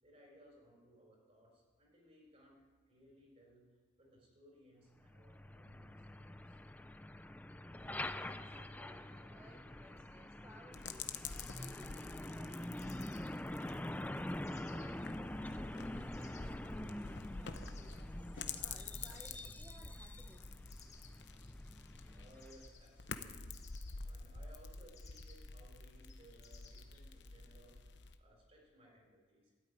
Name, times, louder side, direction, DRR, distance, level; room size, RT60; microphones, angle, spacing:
voice 1, 0.0-2.5 2.9-3.6 4.0-6.6 21.6-21.7 22.1-23.5 24.0-27.8 28.2-29.5, right 1 dB, 35° right, -2 dB, 4.4 m, -63 dB
Truck, 5.0-22.7, left 1 dB, 10° left, 0.4 m, -46 dB
voice 2, 7.6-11.2 11.5-20.5, equal, 15° right, -1 dB, 1.1 m, -61 dB
sound 1, 10.7-28.2, left 5 dB, 60° left, 0.8 m, -49 dB
sound 2, 11.2-13.3 14.4-14.9 15.6-16.4 17.5-18.2 19.0-19.6 20.7-23.1 23.5-23.9 24.9-25.5 26.0-27.0, left 6 dB, 35° left, 1.7 m, -62 dB
13.5 x 8.6 x 9.5 m, 1.4 s
head